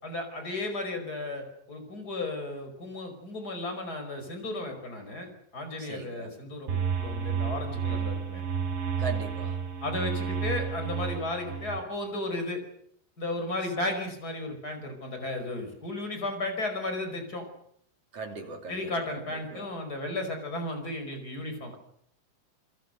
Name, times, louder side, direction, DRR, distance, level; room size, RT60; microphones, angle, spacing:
voice 1, 0.0-8.4 9.8-12.6 13.2-17.5 18.7-21.7, left 2 dB, 20° left, 5.4 m, -34 dB
voice 2, 5.8-6.3 9.0-9.6 18.1-18.9 19.5-19.7, right 4 dB, 40° right, 3.2 m, -38 dB
sound 1, 6.7-11.8, right 6 dB, 80° right, 7.8 m, -31 dB
28.5 x 22.5 x 6.7 m
omnidirectional pair, 4.8 m